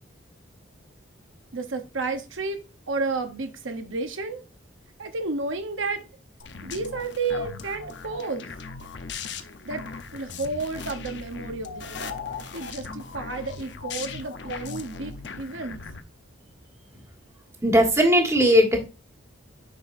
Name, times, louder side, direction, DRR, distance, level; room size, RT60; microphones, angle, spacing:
voice 1, 1.5-2.6 2.9-4.4 5.0-6.1 6.6-8.5 9.6-9.8 10.1-12.1 12.5-15.8, right 3 dB, 75° right, 1.0 m, -31 dB
sound 1, 6.4-16.0, left 4 dB, 60° left, 0.8 m, -38 dB
voice 2, 17.6-18.8, equal, 15° right, 1.5 m, -18 dB
9.2 x 5.8 x 2.6 m
head